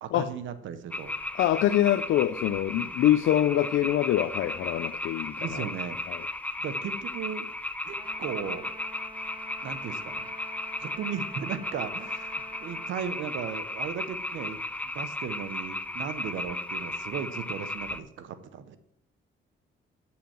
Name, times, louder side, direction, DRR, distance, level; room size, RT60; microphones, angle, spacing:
voice 1, 0.0-1.1 5.4-6.0 6.6-7.5 7.8-8.7 9.6-10.3 10.8-18.8, right 8 dB, 75° right, 11 dB, 0.9 m, -36 dB
sound 1, 0.9-18.0, left 2 dB, 5° left, 0.4 m, -35 dB
voice 2, 1.4-5.6 6.1-6.2, left 12 dB, 75° left, 8 dB, 0.5 m, -25 dB
Trumpet, 8.0-13.0, equal, 25° right, 0.9 m, -47 dB
8.5 x 5.7 x 5.7 m, 0.78 s
cardioid pair, 90°, 20 cm